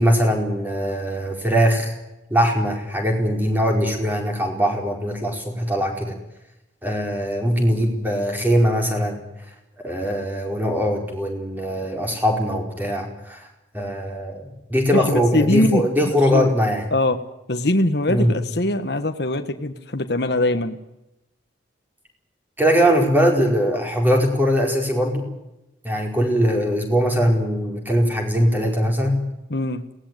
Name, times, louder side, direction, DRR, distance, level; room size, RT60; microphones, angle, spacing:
voice 1, 0.0-1.9 2.3-6.2 6.8-9.2 9.8-13.5 13.7-16.9 18.1-18.3 22.6-25.3 25.8-29.2, equal, 10° right, 2 dB, 4.7 m, -21 dB
voice 2, 14.9-15.8 16.3-16.5 16.9-17.2 17.5-20.8 29.5-29.8, left 1 dB, 60° left, 7 dB, 1.4 m, -22 dB
22.5 x 18.5 x 9.3 m, 0.93 s
head